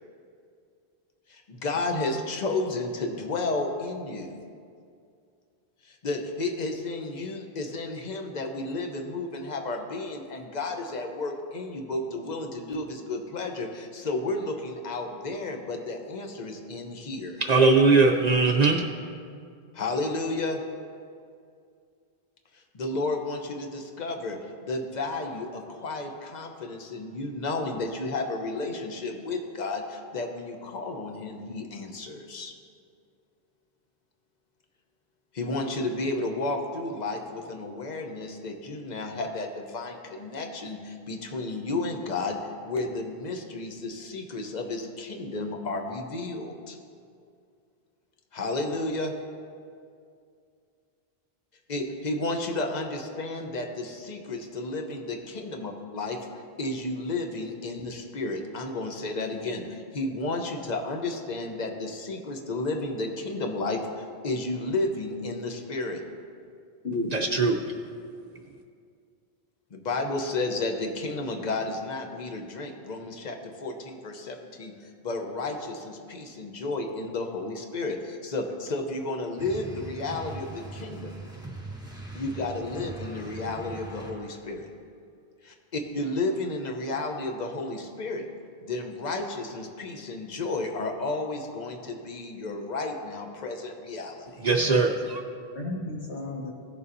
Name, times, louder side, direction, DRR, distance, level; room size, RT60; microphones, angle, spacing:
voice 1, 1.3-4.4 5.8-17.4 19.7-20.6 22.5-32.5 35.3-46.8 48.3-49.1 51.7-56.2 56.6-66.0 69.7-81.1 82.1-84.7 85.4-88.3 88.6-94.4, left 2 dB, 45° left, 3 dB, 0.9 m, -32 dB
voice 2, 17.4-18.8 67.1-67.6 94.4-95.2, right 3 dB, 50° right, 3 dB, 0.6 m, -20 dB
voice 3, 66.8-67.5 94.4-94.8 95.6-96.5, left 2 dB, 90° left, -2 dB, 1.8 m, -33 dB
sound 1, 79.4-84.5, right 2 dB, 5° right, 1.0 m, -41 dB
16.5 x 6.9 x 2.6 m, 2.3 s
omnidirectional pair, 1.1 m